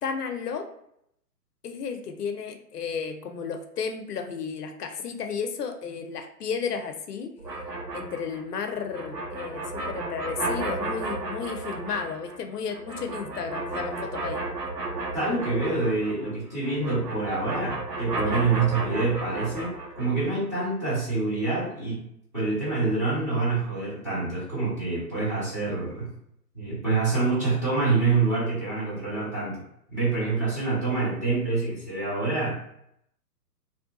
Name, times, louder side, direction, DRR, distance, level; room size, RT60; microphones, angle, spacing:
voice 1, 0.0-0.7 1.6-7.3 7.9-14.4 18.2-18.3, left 6 dB, 70° left, 5 dB, 0.6 m, -33 dB
sound 1, 7.4-16.3 16.6-20.3, right 2 dB, 75° right, 0.9 m, -33 dB
voice 2, 15.1-22.0 22.3-26.1 26.5-29.6 29.9-32.6, right 3 dB, 10° right, -8 dB, 0.5 m, -26 dB
2.6 x 2.2 x 2.7 m, 0.75 s
figure-of-eight pair, 130°, 49 cm